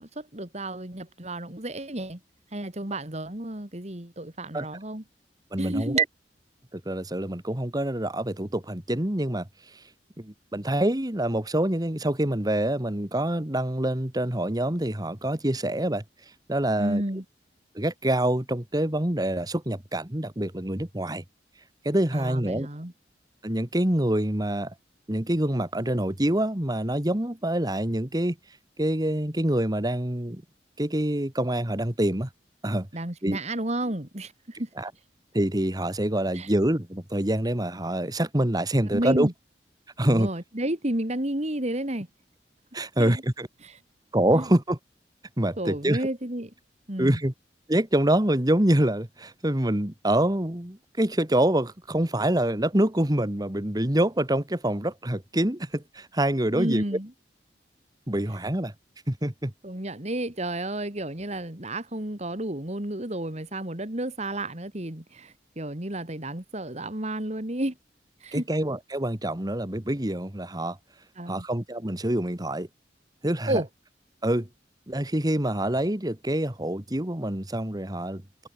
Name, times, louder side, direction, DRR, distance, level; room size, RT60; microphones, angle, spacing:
voice 1, 0.0-2.2 2.5-5.0 5.6-6.0 16.8-17.2 22.1-22.9 32.9-34.7 36.3-36.5 38.9-39.3 40.0-42.1 43.0-43.2 43.6-43.7 44.3-44.5 45.6-46.5 46.9-47.2 56.5-57.1 59.6-67.7 68.2-68.4 71.2-71.4 73.5-73.7, right 1 dB, 40° right, 2.9 m, -31 dB
voice 2, 5.5-6.0 6.7-9.5 10.2-16.0 16.5-17.0 17.8-21.2 21.8-22.7 23.4-24.7 25.1-28.4 28.8-30.4 30.8-32.3 32.6-32.9 33.2-33.4 34.8-34.9 35.3-39.3 40.0-40.3 42.7-43.5 44.1-44.8 45.4-46.0 47.0-47.3 47.7-56.8 58.1-58.7 59.1-59.5 68.3-70.8 71.3-72.7 73.2-73.6 74.2-74.5 74.9-78.5, right 1 dB, 20° right, 1.8 m, -26 dB
head